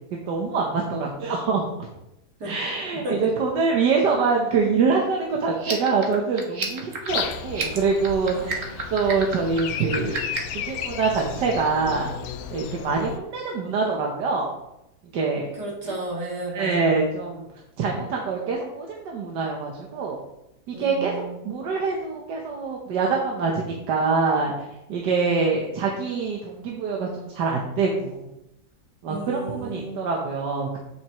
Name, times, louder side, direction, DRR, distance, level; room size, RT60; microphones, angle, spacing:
voice 1, 0.1-1.7 2.4-8.4 8.9-10.2 10.5-12.1 12.5-14.5 15.1-15.5 16.5-17.5 17.8-20.2 20.7-28.3 29.0-30.8, right 4 dB, 90° right, -1 dB, 1.6 m, -25 dB
sound 1, 5.5-10.6, right 4 dB, 55° right, 1.4 m, -32 dB
Breathing, 7.1-13.2, left 8 dB, 70° left, 1.0 m, -34 dB
voice 2, 8.3-8.7 15.5-16.7 20.7-21.4 29.0-30.0, right 1 dB, 70° right, -2 dB, 2.6 m, -33 dB
8.1 x 7.3 x 3.0 m, 0.87 s
omnidirectional pair, 1.8 m